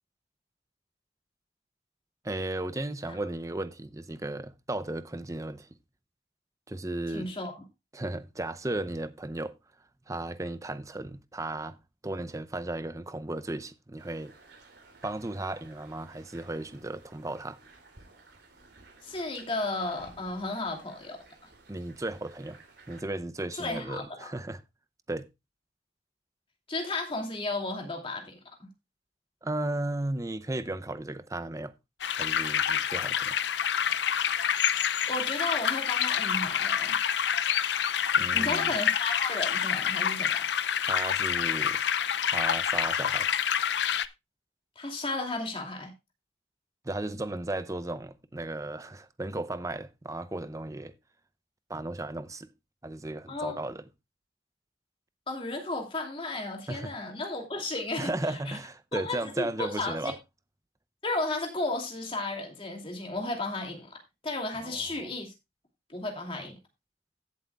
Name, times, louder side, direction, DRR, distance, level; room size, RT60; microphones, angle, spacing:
voice 1, 2.2-5.7 6.7-7.3 7.9-9.5 10.1-11.8 12.0-14.3 15.0-17.6 21.7-22.6 22.9-24.6 25.1-25.3 29.4-31.7 32.2-33.4 38.2-38.7 40.9-41.8 42.3-43.3 46.8-50.9 51.7-52.5 52.8-53.8 56.7-56.9 58.0-60.2 64.6-64.8, right 2 dB, 20° right, 0.6 m, -35 dB
voice 2, 7.1-7.6 19.0-21.5 23.5-24.3 26.7-28.7 35.1-37.0 38.3-40.3 44.8-45.9 53.3-53.6 55.3-58.6 58.9-60.1 61.0-65.3 65.9-66.6, left 2 dB, 30° left, 2.6 m, -34 dB
sound 1, 14.0-23.0, right 3 dB, 85° right, 3.0 m, -56 dB
sound 2, 32.0-44.1, left 8 dB, 80° left, 0.6 m, -27 dB
16.0 x 7.7 x 2.3 m
head